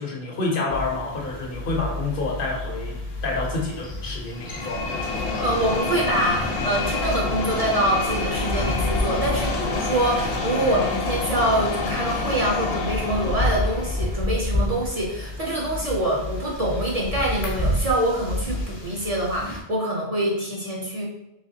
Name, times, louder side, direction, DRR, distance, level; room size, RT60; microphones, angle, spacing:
voice 1, 0.0-3.0 3.2-4.9, left 3 dB, 60° left, -1 dB, 0.9 m, -28 dB
sound 1, 0.7-19.6, left 1 dB, 30° left, 0.6 m, -31 dB
sound 2, 4.3-14.2, left 3 dB, 90° left, 0.9 m, -28 dB
voice 2, 5.4-21.0, right 1 dB, 45° right, -3 dB, 0.6 m, -25 dB
3.3 x 3.1 x 2.7 m, 0.91 s
omnidirectional pair, 1.1 m